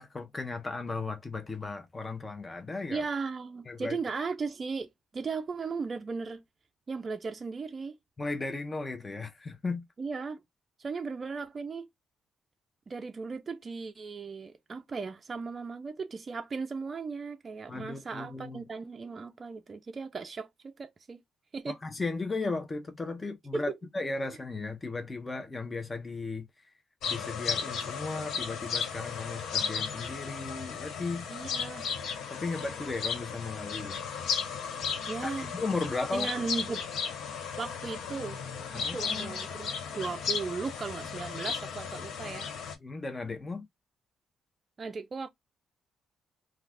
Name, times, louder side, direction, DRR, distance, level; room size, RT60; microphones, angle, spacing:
voice 1, 0.0-3.0 3.7-4.0 8.2-9.8 17.7-18.6 21.7-26.5 27.1-31.3 32.3-34.0 35.2-36.3 38.7-39.0 42.8-43.7, left 3 dB, 20° left, 0.6 m, -35 dB
voice 2, 2.9-6.4 6.9-8.0 10.0-10.4 10.8-11.9 12.9-21.2 21.5-21.8 23.5-23.8 31.3-31.9 35.1-35.5 36.1-36.9 37.6-38.4 38.7-42.5 44.8-45.3, right 4 dB, 35° right, 0.4 m, -37 dB
sound 1, 27.0-42.7, left 6 dB, 75° left, 0.6 m, -35 dB
2.3 x 2.3 x 3.5 m
cardioid pair, 110°, 0 cm